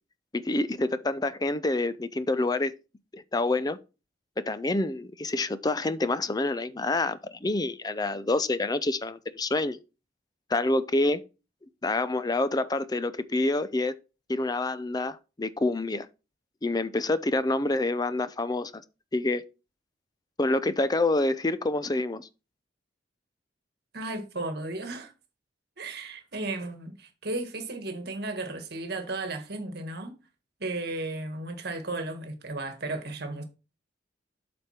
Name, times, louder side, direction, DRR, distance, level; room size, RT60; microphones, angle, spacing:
voice 1, 0.3-2.7 3.1-3.8 4.4-9.8 10.5-11.2 11.8-13.9 14.3-16.1 16.6-18.7 19.1-19.4 20.4-22.3, left 2 dB, 20° left, 0.5 m, -27 dB
voice 2, 23.9-25.1 25.8-30.1 30.6-33.4, right 2 dB, 60° right, 1.5 m, -34 dB
8.0 x 5.1 x 4.3 m
head